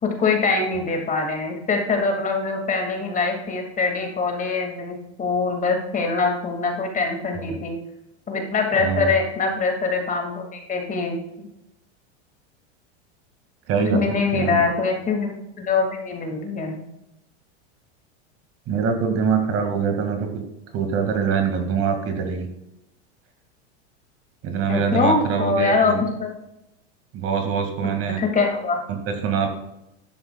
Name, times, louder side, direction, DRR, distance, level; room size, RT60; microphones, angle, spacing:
voice 1, 0.0-7.8 8.3-11.5 13.9-15.3 15.6-16.8 24.7-26.3 27.8-28.8, left 4 dB, 25° left, 2 dB, 2.2 m, -23 dB
voice 2, 8.8-9.1 13.7-14.0 14.3-14.6 18.7-20.4 20.7-22.5 24.4-26.0 27.1-28.2 28.9-29.5, right 6 dB, 40° right, 4 dB, 2.1 m, -24 dB
12.5 x 10.0 x 2.3 m, 0.87 s
supercardioid pair, 120°, 34 cm